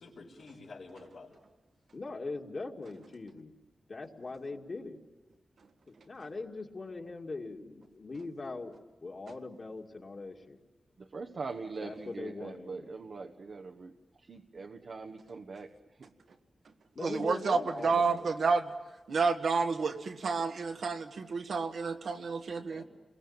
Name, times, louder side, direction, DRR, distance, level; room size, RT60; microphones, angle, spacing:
voice 1, 0.0-1.4 22.6-22.8, left 3 dB, 85° left, -5 dB, 4.1 m, -50 dB
voice 2, 1.9-3.5 3.9-5.0 5.9-8.7 9.0-10.6 11.8-12.9 16.9-18.3, left 3 dB, 50° left, 1 dB, 2.5 m, -41 dB
voice 3, 11.0-15.7 16.0-16.1, right 4 dB, 70° right, 4 dB, 1.2 m, -42 dB
voice 4, 17.0-18.7 19.1-22.8, right 4 dB, 85° right, 5 dB, 1.7 m, -30 dB
29.5 x 22.0 x 8.9 m, 1.2 s
wide cardioid pair, 100°, 0 cm